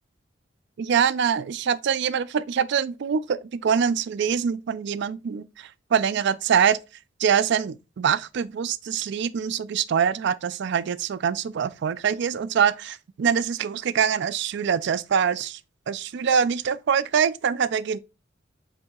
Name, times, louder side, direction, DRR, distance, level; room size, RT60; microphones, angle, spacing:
voice 1, 0.8-6.8 7.2-15.6 15.9-18.0, right 7 dB, 65° right, 0.4 m, -24 dB
7.5 x 2.7 x 2.3 m
head